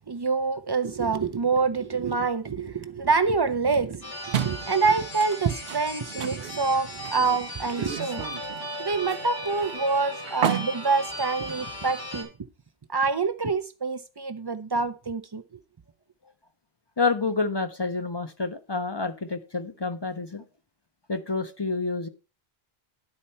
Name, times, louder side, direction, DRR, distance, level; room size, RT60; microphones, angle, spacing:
voice 1, 0.1-8.3 8.8-12.3 12.9-15.4, right 4 dB, 45° right, 0.3 m, -26 dB
sound 1, 4.0-12.2, left 1 dB, 75° left, 2.5 m, -37 dB
sound 2, 4.3-12.1, right 10 dB, 65° right, 0.7 m, -35 dB
voice 2, 17.0-20.4 21.1-22.1, left 4 dB, 30° left, 0.5 m, -28 dB
10.5 x 4.3 x 5.5 m
omnidirectional pair, 1.0 m